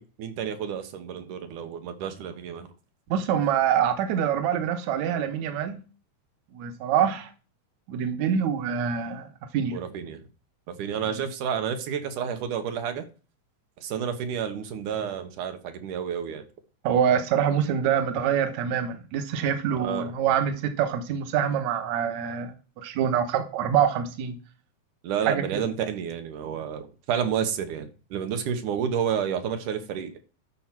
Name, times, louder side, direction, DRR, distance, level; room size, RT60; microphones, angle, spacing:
voice 1, 0.2-2.7 9.7-10.3 10.7-13.1 13.8-16.4 19.7-20.1 25.0-30.2, right 8 dB, 85° right, 2.8 m, -30 dB
voice 2, 3.1-5.8 6.5-7.3 7.9-9.3 9.5-9.8 16.8-22.5 22.8-24.4 25.3-25.6, right 8 dB, 70° right, 2.4 m, -25 dB
12.5 x 4.5 x 6.0 m
omnidirectional pair, 3.5 m